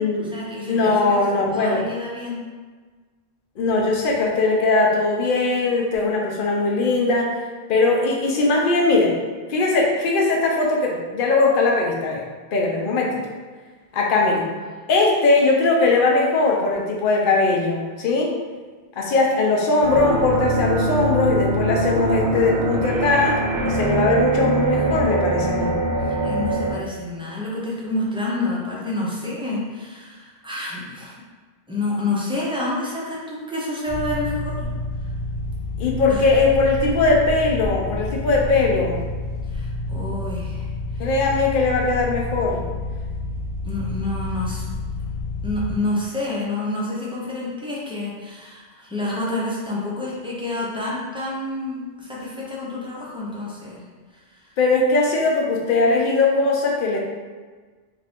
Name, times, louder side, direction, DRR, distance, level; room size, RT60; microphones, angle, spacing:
voice 1, 0.0-2.4 14.2-14.5 25.8-31.2 31.7-34.7 36.1-36.3 39.5-40.7 40.9-41.1 43.6-44.6 45.4-53.8 54.1-54.5, left 2 dB, 10° right, -6 dB, 0.4 m, -29 dB
voice 2, 0.7-1.8 3.6-7.4 7.7-9.2 9.5-12.2 12.5-13.2 13.9-14.5 14.9-18.3 19.0-25.7 35.8-39.0 41.0-42.6 54.6-57.0, left 3 dB, 60° left, -1 dB, 0.7 m, -20 dB
sound 1, 19.8-26.7, right 1 dB, 80° right, 0.8 m, -23 dB
sound 2, 33.9-45.7, left 2 dB, 25° left, 0.8 m, -29 dB
2.6 x 2.4 x 3.4 m, 1.4 s
omnidirectional pair, 1.0 m